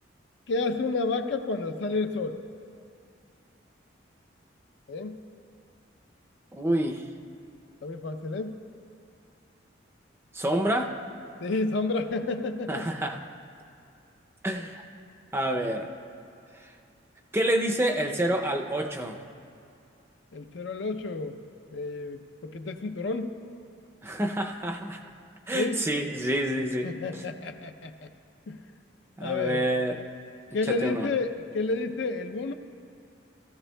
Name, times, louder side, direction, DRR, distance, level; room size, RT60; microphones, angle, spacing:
voice 1, 0.5-2.4 4.9-5.2 7.8-8.6 11.4-12.9 20.3-21.4 21.7-23.3 25.5-25.8 26.8-28.1 28.5-28.6 29.2-29.6 30.5-32.5, left 3 dB, 65° left, 7 dB, 0.5 m, -30 dB
voice 2, 6.5-7.0 10.3-10.9 12.7-13.2 14.4-14.9 15.3-15.9 17.3-19.2 24.0-25.0 25.5-27.2 29.2-30.0 30.7-31.1, right 1 dB, 10° right, 3 dB, 0.5 m, -28 dB
18.0 x 13.5 x 2.2 m, 2.5 s
head